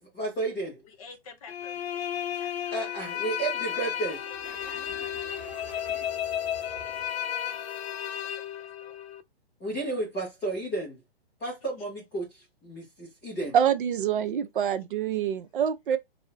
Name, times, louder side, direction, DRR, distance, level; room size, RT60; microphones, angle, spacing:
voice 1, 0.0-0.8 2.7-4.2 9.6-11.0 11.4-13.5, right 2 dB, 5° left, 0.3 m, -32 dB
voice 2, 0.9-2.1 2.4-2.8 3.7-5.1 5.6-6.1 6.4-7.0 7.3-9.0, left 4 dB, 35° left, 0.7 m, -52 dB
sound 1, 1.5-9.2, left 10 dB, 85° left, 0.5 m, -33 dB
sound 2, 3.2-8.2, right 2 dB, 20° right, 0.9 m, -48 dB
voice 3, 13.5-16.0, right 9 dB, 60° right, 0.6 m, -26 dB
4.2 x 2.0 x 2.2 m
hypercardioid pair, 140°, 30 cm